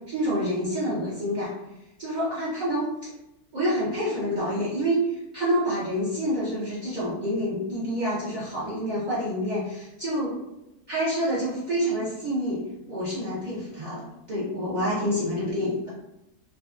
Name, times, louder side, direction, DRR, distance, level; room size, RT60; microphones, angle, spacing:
voice 1, 0.0-1.5 2.0-3.1 3.5-10.4 10.9-12.6 12.9-15.8, equal, 70° right, -9 dB, 0.4 m, -27 dB
2.6 x 2.2 x 2.4 m, 0.91 s
omnidirectional pair, 1.6 m